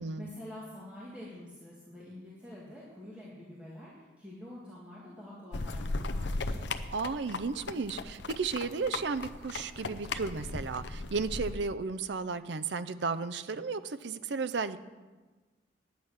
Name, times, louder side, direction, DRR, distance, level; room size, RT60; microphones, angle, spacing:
voice 1, 0.0-6.7, left 1 dB, 5° right, -7 dB, 1.9 m, -47 dB
sound 1, 5.5-11.5, left 3 dB, 75° left, 0.6 m, -37 dB
voice 2, 6.9-14.8, right 4 dB, 75° right, 12 dB, 0.6 m, -34 dB
10.0 x 9.5 x 6.4 m, 1.3 s
head